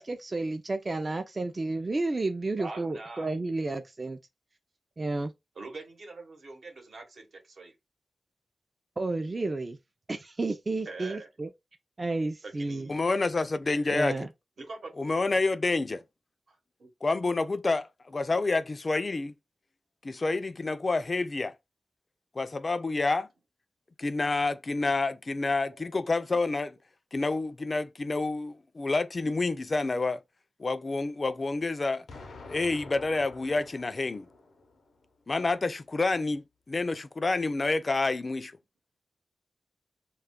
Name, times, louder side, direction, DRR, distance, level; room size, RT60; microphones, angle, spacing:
voice 1, 0.0-4.2 5.0-5.3 9.0-9.8 10.1-11.5 12.0-12.9 13.9-14.3, right 2 dB, 40° right, 0.3 m, -31 dB
voice 2, 2.6-3.3 5.6-7.7 10.9-11.3 12.4-13.0 14.6-15.2 16.5-16.9, right 3 dB, 75° right, 0.9 m, -43 dB
voice 3, 12.9-14.2 15.0-16.0 17.0-19.3 20.0-21.5 22.4-23.3 24.0-26.7 27.1-30.2 30.6-32.0 32.5-34.3 35.3-38.5, left 3 dB, 45° left, 0.3 m, -28 dB
Explosion, 32.1-35.1, left 3 dB, 90° left, 0.6 m, -48 dB
2.3 x 2.1 x 3.5 m
cardioid pair, 65°, 0 cm